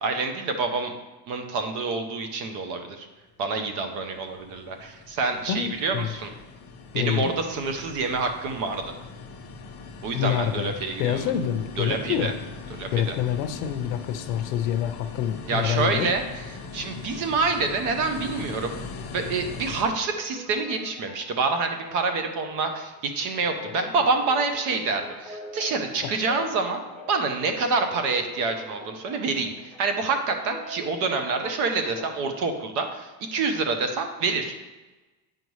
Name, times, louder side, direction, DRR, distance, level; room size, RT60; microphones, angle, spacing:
voice 1, 0.0-0.9 1.3-3.1 3.4-6.3 6.9-8.9 10.0-11.3 11.8-12.3 12.7-13.2 15.5-16.2 16.5-18.7 19.1-26.8 27.1-34.6, right 4 dB, 40° right, 6 dB, 0.7 m, -27 dB
sound 1, 3.2-19.8, left 4 dB, 35° left, 1.0 m, -41 dB
voice 2, 5.5-6.1 6.9-7.3 10.1-10.7 11.0-12.4 12.9-16.1 23.7-23.9 26.0-26.1, left 10 dB, 70° left, 9 dB, 0.8 m, -27 dB
sound 2, 20.1-32.2, left 1 dB, 5° left, 0.7 m, -43 dB
9.0 x 5.4 x 3.1 m, 1.1 s
cardioid pair, 175°, 49 cm